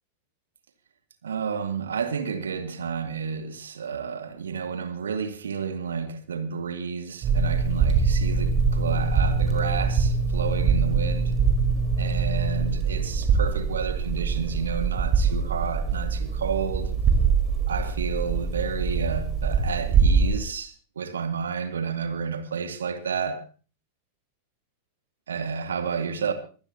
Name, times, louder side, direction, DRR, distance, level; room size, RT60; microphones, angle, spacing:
voice 1, 1.2-11.3 12.0-16.9 17.7-23.4 25.3-26.3, right 6 dB, 70° right, 2.3 m, -31 dB
sound 1, 7.2-20.4, right 5 dB, 30° right, 4.5 m, -23 dB
24.5 x 15.0 x 2.9 m
figure-of-eight pair, 90°, 0 cm